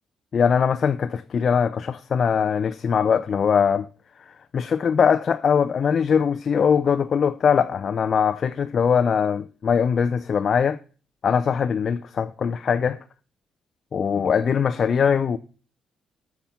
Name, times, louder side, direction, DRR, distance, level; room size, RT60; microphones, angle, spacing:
voice 1, 0.3-3.9 4.3-10.8 11.2-13.0 13.9-15.4, left 7 dB, 50° left, 0.5 m, -21 dB
13.5 x 6.0 x 5.8 m
cardioid pair, 90°, 0 cm